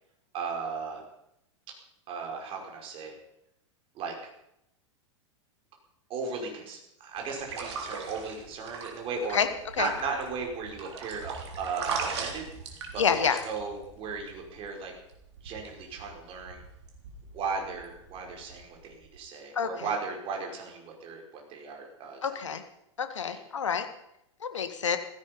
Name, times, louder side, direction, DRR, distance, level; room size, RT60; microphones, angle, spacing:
voice 1, 0.3-1.0 2.1-3.1 3.9-4.2 6.1-9.5 9.8-12.4 12.9-14.9 15.4-16.6 17.3-22.6 23.2-23.4, right 4 dB, 35° right, 1 dB, 5.3 m, -36 dB
sound 1, 7.2-19.2, right 5 dB, 60° right, 3.6 m, -40 dB
voice 2, 13.0-13.4 19.5-19.7 22.2-22.6 23.0-23.9 24.4-25.0, left 7 dB, 70° left, 9 dB, 1.8 m, -27 dB
16.5 x 15.5 x 5.3 m, 0.80 s
figure-of-eight pair, 90°, 16 cm